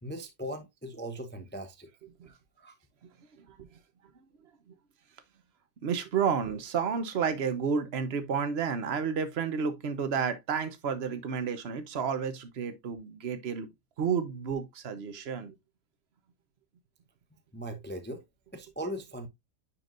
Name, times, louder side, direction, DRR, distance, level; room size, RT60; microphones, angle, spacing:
voice 1, 0.0-1.9 2.3-2.7 17.5-18.2 18.5-19.3, equal, 10° left, 0.5 m, -39 dB
voice 2, 5.8-13.7 14.0-15.5, right 6 dB, 45° right, 1.0 m, -31 dB
9.7 x 4.7 x 2.5 m
omnidirectional pair, 1.8 m